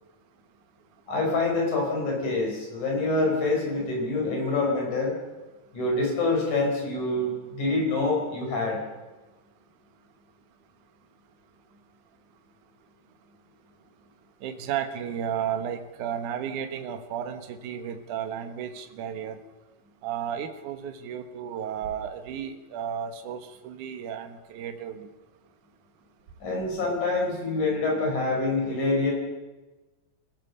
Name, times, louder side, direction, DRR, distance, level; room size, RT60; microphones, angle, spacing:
voice 1, 1.1-5.2 5.7-8.8 26.4-29.1, left 2 dB, 45° left, 0 dB, 6.3 m, -26 dB
voice 2, 14.4-19.4 20.0-25.1, right 9 dB, 60° right, 7 dB, 2.3 m, -33 dB
25.5 x 15.0 x 6.7 m, 1.2 s
omnidirectional pair, 5.0 m